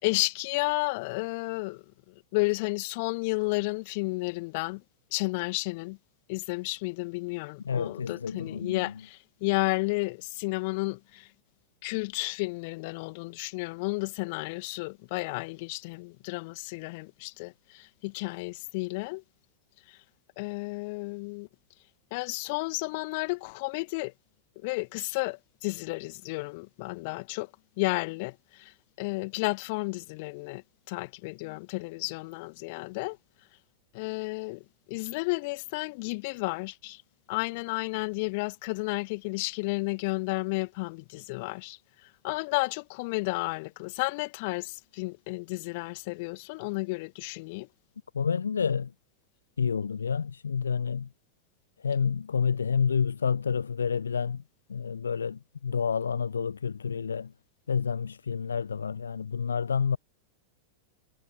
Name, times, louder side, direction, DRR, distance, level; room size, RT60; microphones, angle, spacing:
voice 1, 0.0-4.8 5.1-6.0 6.3-11.3 11.8-19.2 19.9-20.0 20.4-21.5 22.1-24.1 24.6-27.5 27.8-30.6 30.9-33.2 33.9-37.0 37.3-47.7, left 27 dB, 50° left, 1.9 m, -32 dB
voice 2, 7.6-8.8 48.1-48.9 49.6-51.1 51.8-54.4 54.7-57.3 57.7-60.0, left 6 dB, 70° left, 0.8 m, -29 dB
figure-of-eight pair, 90°, 0 cm